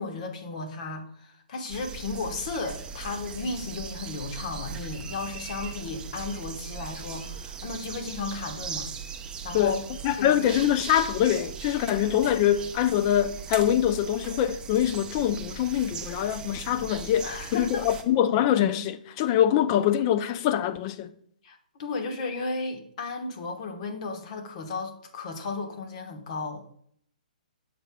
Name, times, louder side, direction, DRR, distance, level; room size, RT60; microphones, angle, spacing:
voice 1, 0.0-8.9 9.4-9.8 10.2-10.4 17.2-17.8 21.4-26.7, left 3 dB, 50° left, 1.3 m, -34 dB
sound 1, 1.7-18.0, right 6 dB, 15° right, 0.6 m, -39 dB
voice 2, 10.0-21.1, left 11 dB, 35° left, 0.5 m, -24 dB
8.0 x 6.6 x 2.3 m
hypercardioid pair, 140°, 5 cm